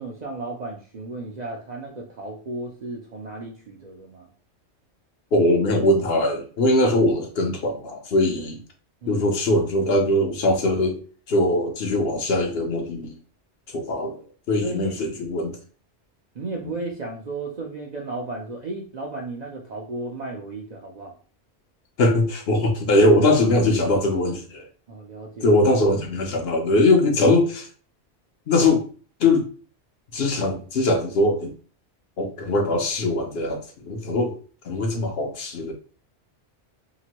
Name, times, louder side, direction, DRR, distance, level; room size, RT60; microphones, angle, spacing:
voice 1, 0.0-4.3 9.0-9.3 14.6-14.9 16.3-21.1 24.9-25.5, right 2 dB, 50° right, -1 dB, 0.6 m, -34 dB
voice 2, 5.3-8.6 9.1-11.0 11.3-13.1 13.7-14.2 14.5-15.6 16.6-16.7 22.0-24.6 25.4-27.7 28.5-28.8 29.2-29.5 30.1-31.5 32.2-34.4 34.6-35.7, left 1 dB, 65° left, 3 dB, 0.9 m, -21 dB
2.9 x 2.5 x 2.9 m, 0.40 s
omnidirectional pair, 1.1 m